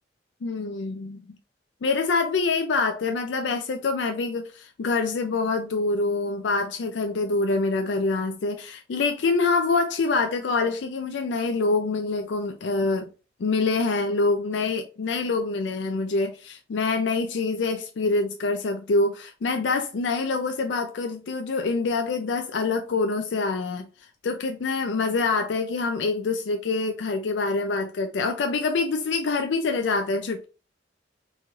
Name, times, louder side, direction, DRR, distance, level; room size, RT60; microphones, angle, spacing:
voice 1, 0.4-1.4 1.8-13.1 13.4-23.8 24.2-30.4, left 3 dB, 80° left, 0.4 m, -25 dB
4.1 x 3.0 x 2.3 m
head